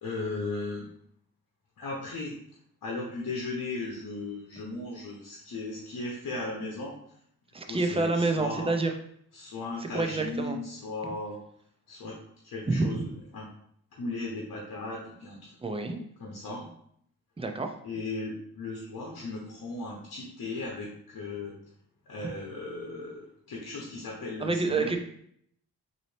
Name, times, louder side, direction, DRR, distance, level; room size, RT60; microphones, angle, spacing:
voice 1, 0.0-0.9 1.8-2.4 2.8-7.0 7.7-8.7 9.3-11.4 11.9-13.5 13.9-15.5 16.2-16.7 17.8-21.6 22.1-25.0, left 2 dB, 60° left, -2 dB, 0.9 m, -36 dB
voice 2, 7.5-8.9 9.9-10.6 12.7-13.0 15.6-16.0 17.4-17.7 24.4-25.0, right 3 dB, 15° right, 5 dB, 0.5 m, -28 dB
4.0 x 2.8 x 3.2 m, 0.66 s
cardioid pair, 90°, 37 cm